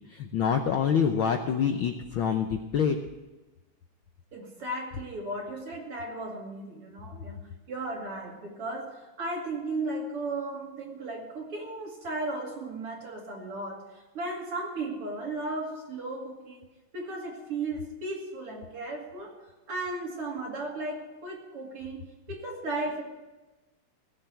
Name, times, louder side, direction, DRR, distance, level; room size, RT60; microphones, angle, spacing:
voice 1, 0.1-3.0, left 7 dB, 80° left, 5 dB, 1.1 m, -26 dB
voice 2, 4.3-16.7 16.9-23.0, right 2 dB, 50° right, 0 dB, 3.2 m, -35 dB
18.0 x 7.5 x 8.2 m, 1.1 s
omnidirectional pair, 3.3 m